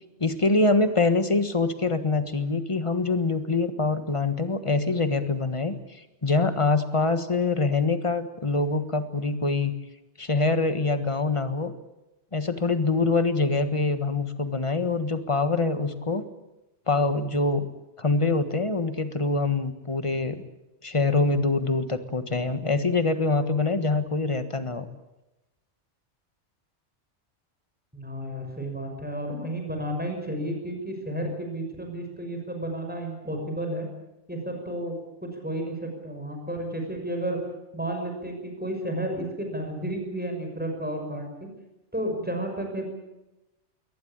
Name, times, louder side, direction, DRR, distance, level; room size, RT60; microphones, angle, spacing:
voice 1, 0.2-9.7 10.2-11.7 12.3-16.2 16.9-17.7 18.0-20.4 20.8-24.9, left 3 dB, 25° left, 10 dB, 1.5 m, -24 dB
voice 2, 27.9-33.9 34.3-35.0 35.2-37.4 37.7-41.5 41.9-42.8, right 1 dB, 10° right, 3 dB, 6.1 m, -32 dB
22.0 x 19.0 x 8.8 m, 0.97 s
omnidirectional pair, 1.2 m